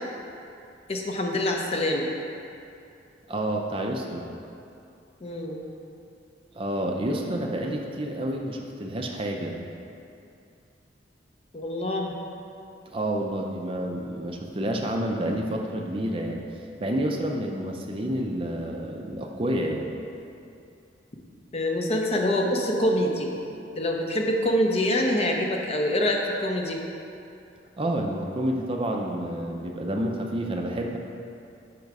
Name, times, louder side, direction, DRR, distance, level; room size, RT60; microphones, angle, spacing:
voice 1, 0.9-2.1 5.2-5.7 7.6-7.7 11.5-12.1 21.5-23.3 23.8-26.8, left 1 dB, 35° left, 1 dB, 0.6 m, -25 dB
voice 2, 3.3-4.3 6.5-9.6 12.9-16.4 16.8-19.9 27.8-31.0, right 1 dB, 30° right, 1 dB, 0.4 m, -29 dB
5.3 x 4.9 x 4.7 m, 2.6 s
head